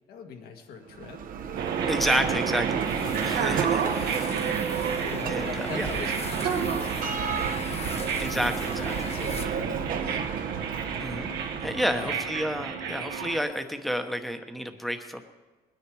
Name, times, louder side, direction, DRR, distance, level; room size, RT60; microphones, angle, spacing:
voice 1, 0.1-1.2 5.0-7.7 8.5-10.2 11.9-12.3, left 5 dB, 65° left, 4 dB, 1.8 m, -43 dB
Bell, 0.9-12.7, right 7 dB, 55° right, 1.0 m, -33 dB
sound 1, 1.6-13.4, right 7 dB, 75° right, 1.6 m, -31 dB
voice 2, 1.9-2.8 3.2-4.4 5.3-5.9 8.2-9.1 11.0-11.3 11.6-15.2, equal, ahead, 7 dB, 1.1 m, -30 dB
sound 2, 2.8-9.9, left 4 dB, 40° left, 1.3 m, -40 dB
20.0 x 10.0 x 4.8 m, 1.3 s
cardioid pair, 110°, 17 cm